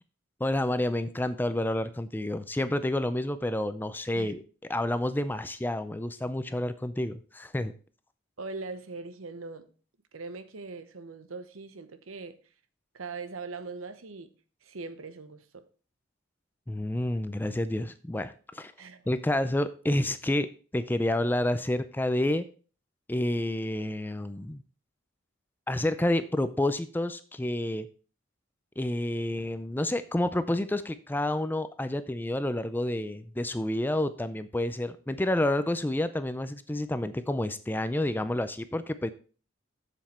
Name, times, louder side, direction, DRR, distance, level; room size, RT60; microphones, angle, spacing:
voice 1, 0.4-4.4 4.7-7.7 16.7-18.7 19.1-20.5 20.7-22.5 23.1-24.6 25.7-27.9 28.8-39.1, left 1 dB, 10° left, 0.4 m, -29 dB
voice 2, 8.4-9.7 10.1-12.4 12.9-14.3 14.6-15.6 18.8-19.0, right 3 dB, 90° right, 0.9 m, -41 dB
7.4 x 7.1 x 4.2 m
head